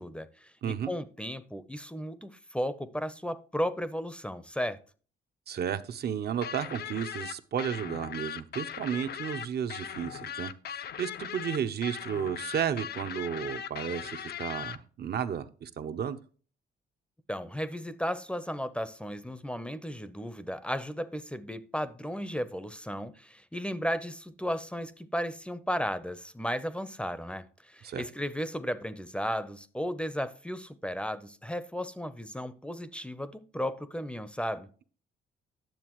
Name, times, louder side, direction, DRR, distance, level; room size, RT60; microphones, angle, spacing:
voice 1, 0.0-4.8 17.3-34.7, equal, 5° left, 0.6 m, -35 dB
voice 2, 0.6-0.9 5.5-16.2 27.8-28.1, right 8 dB, 55° right, 0.7 m, -33 dB
sound 1, 6.4-14.8, left 8 dB, 55° left, 0.5 m, -39 dB
10.5 x 7.0 x 3.0 m
cardioid pair, 90°, 20 cm